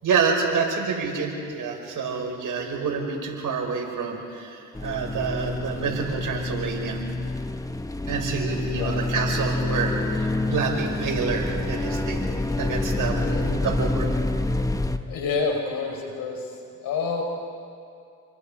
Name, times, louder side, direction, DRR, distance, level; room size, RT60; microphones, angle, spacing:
voice 1, 0.0-7.0 8.1-12.3 12.6-14.1, right 5 dB, 65° right, 0 dB, 5.9 m, -27 dB
sound 1, 4.8-15.0, left 2 dB, 10° left, 1.3 m, -27 dB
voice 2, 8.7-9.1 13.1-13.5 15.1-17.2, left 4 dB, 80° left, 2 dB, 5.1 m, -29 dB
30.0 x 22.5 x 5.1 m, 2.5 s
supercardioid pair, 60°, 34 cm